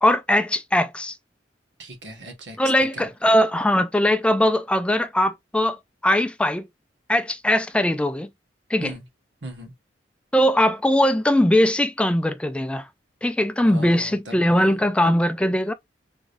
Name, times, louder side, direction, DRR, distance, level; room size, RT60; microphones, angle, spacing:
voice 1, 0.0-1.2 2.6-5.8 6.0-6.7 7.1-8.3 8.7-8.9 10.3-12.9 13.2-15.7, left 1 dB, 5° left, 0.3 m, -20 dB
voice 2, 1.8-2.6 2.9-3.1 8.8-9.0 9.4-9.7 13.6-14.7, equal, 75° right, 1.3 m, -38 dB
3.6 x 3.4 x 2.5 m
head